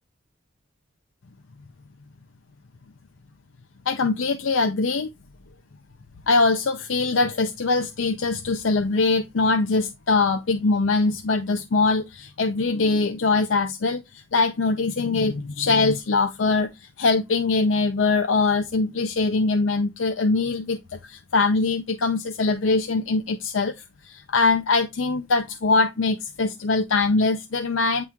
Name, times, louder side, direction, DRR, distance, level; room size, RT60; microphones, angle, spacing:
voice 1, 3.9-5.1 6.3-14.0 14.3-16.7 17.0-28.1, left 3 dB, 75° left, 0.5 m, -22 dB
9.0 x 3.1 x 3.5 m
head